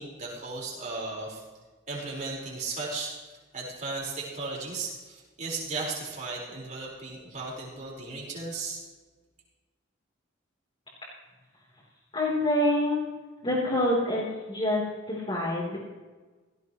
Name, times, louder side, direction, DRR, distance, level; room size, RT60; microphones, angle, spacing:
voice 1, 0.0-1.4 1.9-3.1 3.5-8.8, right 3 dB, 35° right, -4 dB, 5.0 m, -35 dB
voice 2, 12.1-13.0 13.4-15.8, left 1 dB, 25° left, -8 dB, 3.9 m, -26 dB
17.5 x 16.0 x 3.2 m, 1.3 s
head